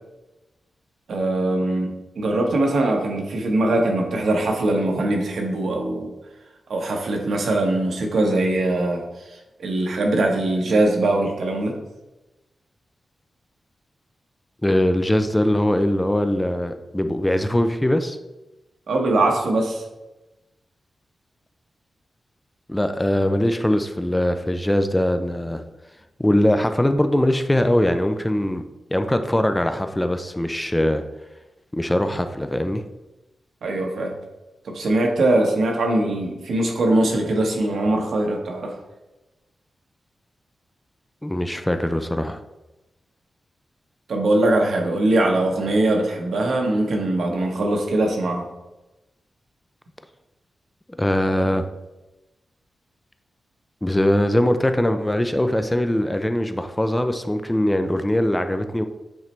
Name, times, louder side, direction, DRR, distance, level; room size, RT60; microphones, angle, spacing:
voice 1, 1.1-6.1 6.7-11.7 18.9-19.8 33.6-34.1 34.6-38.8 44.1-48.4, right 2 dB, 80° right, 1 dB, 1.3 m, -21 dB
voice 2, 14.6-18.2 22.7-25.6 26.2-28.6 28.9-31.0 31.7-32.8 41.2-42.4 51.0-51.6 53.8-58.8, left 1 dB, 10° left, 8 dB, 0.4 m, -21 dB
8.2 x 3.2 x 4.4 m, 1.0 s
wide cardioid pair, 130°, 0 cm